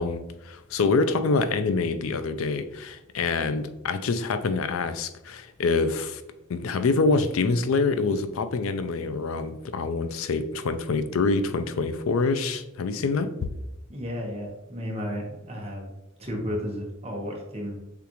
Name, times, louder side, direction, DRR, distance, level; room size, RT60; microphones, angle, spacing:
voice 1, 0.0-6.2 6.5-13.3, left 4 dB, 80° left, 10 dB, 0.4 m, -26 dB
voice 2, 13.9-15.9 16.2-17.7, equal, 30° right, -1 dB, 1.0 m, -33 dB
6.8 x 2.5 x 3.0 m, 0.94 s
head